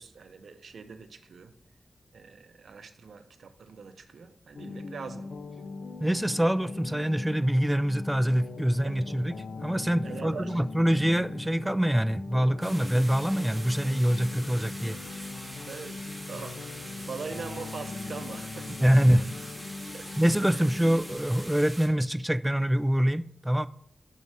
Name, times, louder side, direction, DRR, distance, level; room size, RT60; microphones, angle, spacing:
voice 1, 0.0-1.5 2.1-5.3 8.8-9.0 10.0-10.6 15.7-18.8 19.9-20.1 20.5-20.7, right 5 dB, 85° right, 0.6 m, -42 dB
sound 1, 4.5-21.2, left 3 dB, 80° left, 0.5 m, -40 dB
voice 2, 6.0-9.3 9.6-15.0 18.8-19.2 20.2-23.7, equal, 10° right, 0.3 m, -25 dB
sound 2, 12.6-21.9, equal, 10° left, 2.3 m, -43 dB
5.5 x 5.4 x 4.7 m
cardioid pair, 65°, 0 cm